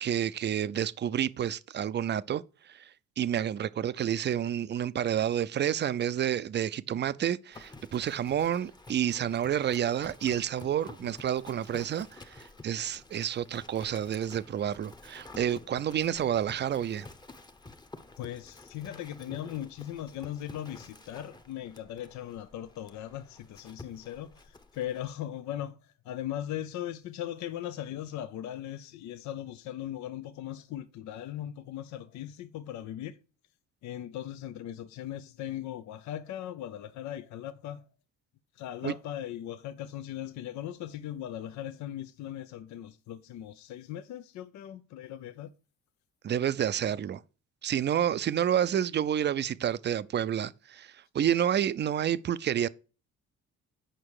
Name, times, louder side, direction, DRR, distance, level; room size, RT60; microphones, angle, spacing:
voice 1, 0.0-2.9 3.2-17.1 38.8-38.9 46.2-47.2 47.6-52.7, right 10 dB, 35° right, 0.5 m, -29 dB
Livestock farm animals working animals, 7.5-25.1, left 2 dB, 15° left, 0.8 m, -50 dB
voice 2, 18.2-33.2 33.8-37.8 38.6-45.5, left 12 dB, 75° left, 0.6 m, -39 dB
8.9 x 5.4 x 4.7 m
cardioid pair, 105°, 29 cm